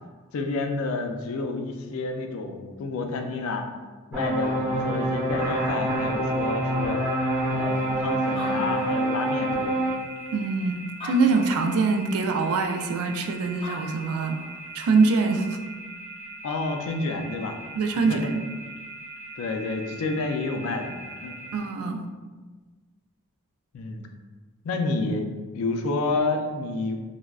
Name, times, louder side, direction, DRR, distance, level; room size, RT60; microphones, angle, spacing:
voice 1, 0.3-3.7 4.1-7.0 7.5-9.9 16.4-17.6 18.0-18.3 19.4-21.4 23.7-24.1 24.6-27.0, left 3 dB, 75° left, 4 dB, 0.3 m, -29 dB
sound 1, 4.1-10.0, right 1 dB, 10° right, 0.7 m, -26 dB
sound 2, 5.4-21.6, right 1 dB, 60° right, 0.7 m, -42 dB
Animal, 7.9-8.0 8.2-9.6 10.3-10.4 10.9-11.9 13.3-13.4 13.6-14.6, left 1 dB, 25° left, 0.6 m, -40 dB
voice 2, 10.3-14.4 14.7-15.6 17.7-18.4 21.5-22.0, right 4 dB, 80° right, 6 dB, 0.3 m, -24 dB
3.4 x 2.0 x 2.3 m, 1.3 s
head